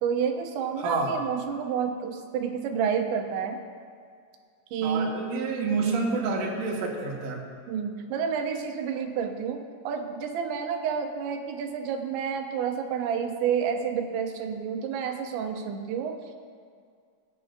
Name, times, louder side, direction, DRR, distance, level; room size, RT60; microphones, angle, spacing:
voice 1, 0.0-3.6 4.7-5.1 5.8-6.2 7.7-16.4, right 7 dB, 85° right, 4 dB, 3.0 m, -29 dB
voice 2, 0.8-1.2 4.8-7.4, right 4 dB, 55° right, -2 dB, 2.0 m, -28 dB
23.5 x 9.6 x 2.7 m, 2.2 s
omnidirectional pair, 5.2 m